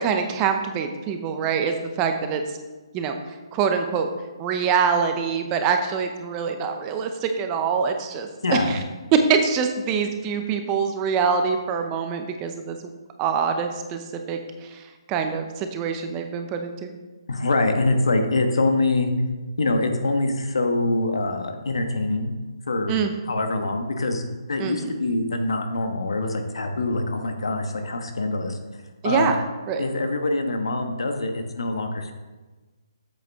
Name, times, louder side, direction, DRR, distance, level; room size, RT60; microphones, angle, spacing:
voice 1, 0.0-2.4 2.9-3.1 3.5-4.1 4.4-8.3 8.7-8.8 9.3-12.8 13.2-14.0 14.3-14.4 14.7-14.8 15.1-16.9 22.9-23.1 24.6-24.9 29.0-29.8, right 6 dB, 20° right, 6 dB, 0.7 m, -24 dB
voice 2, 8.4-8.7 17.3-19.1 19.6-22.4 22.7-23.0 23.3-24.2 24.5-28.6 29.0-29.4 29.8-32.1, left 2 dB, 80° left, 5 dB, 1.2 m, -24 dB
7.7 x 7.0 x 3.6 m, 1.2 s
hypercardioid pair, 155°, 3 cm